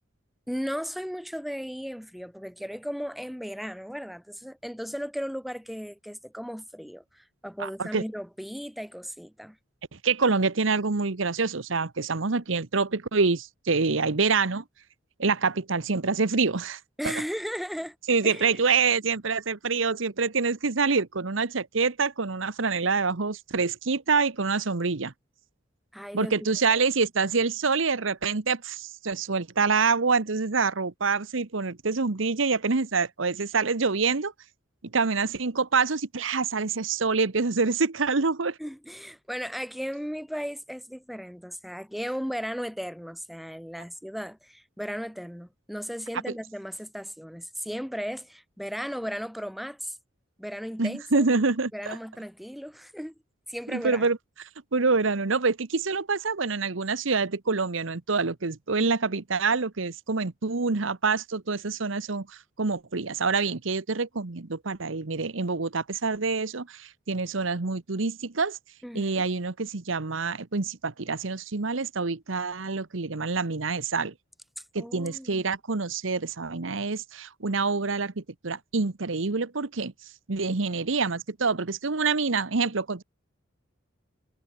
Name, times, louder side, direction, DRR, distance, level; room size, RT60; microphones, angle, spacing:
voice 1, 0.5-9.6 17.0-18.0 18.2-18.5 25.9-26.3 26.7-26.8 38.6-50.0 50.4-51.3 51.7-53.1 53.5-54.1 68.8-69.3 74.8-75.4, equal, ahead, 6.2 m, -36 dB
voice 2, 7.6-8.0 9.9-14.6 15.2-17.1 18.1-25.1 26.1-34.3 34.9-38.6 50.8-52.0 53.7-54.2 54.7-68.6 68.9-74.1 74.7-79.9 80.3-83.0, right 4 dB, 75° right, 1.1 m, -26 dB
head